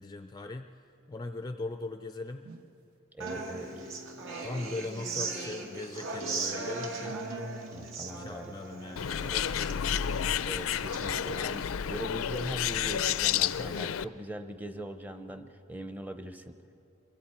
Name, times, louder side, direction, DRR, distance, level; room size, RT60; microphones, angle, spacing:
voice 1, 0.0-2.4 3.3-7.2 8.1-10.0, left 2 dB, 20° left, 7 dB, 0.4 m, -40 dB
sound 1, 2.4-2.8 3.5-3.7 4.4-4.5 5.2-5.3 5.9-6.0 6.7-6.8 7.4-7.5 8.0-8.1 8.7-8.8 9.4-9.5, right 4 dB, 85° right, 1.0 m, -51 dB
voice 2, 3.1-3.7 7.7-8.5 9.2-9.4 10.5-11.6 11.9-16.6, right 1 dB, 10° right, 8 dB, 0.7 m, -41 dB
Human voice / Acoustic guitar, 3.2-11.2, right 3 dB, 70° right, 1.8 m, -38 dB
Bird, 9.0-14.0, left 9 dB, 75° left, 0.4 m, -30 dB
27.5 x 23.0 x 4.3 m, 2.9 s
head